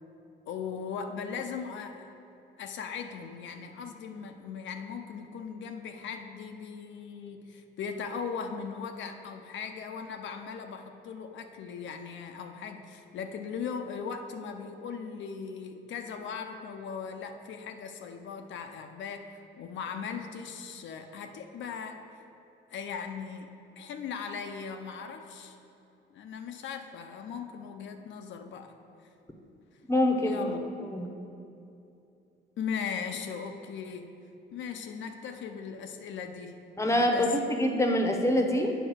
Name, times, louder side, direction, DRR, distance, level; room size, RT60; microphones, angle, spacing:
voice 1, 0.5-2.1 2.6-19.3 19.6-22.0 22.7-23.5 23.8-25.6 26.1-28.7 30.2-30.6 32.6-34.1 34.5-37.3, left 6 dB, 70° left, 5 dB, 0.6 m, -38 dB
voice 2, 29.9-30.4 30.9-31.1 36.8-38.7, left 1 dB, 15° left, 3 dB, 0.9 m, -25 dB
7.9 x 4.4 x 6.3 m, 2.7 s
cardioid pair, 90°, 20 cm